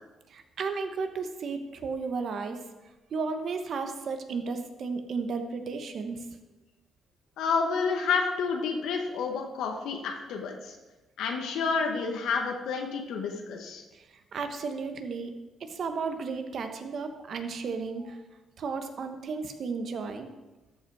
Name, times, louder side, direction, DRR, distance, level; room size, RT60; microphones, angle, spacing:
voice 1, 0.3-2.6 3.1-6.3 13.9-15.3 15.6-18.2 18.6-20.3, right 4 dB, 60° right, 7 dB, 1.1 m, -34 dB
voice 2, 7.4-10.8 11.2-13.8, left 5 dB, 85° left, 2 dB, 1.1 m, -29 dB
13.0 x 5.5 x 4.8 m, 1.1 s
cardioid pair, 90°, 0 cm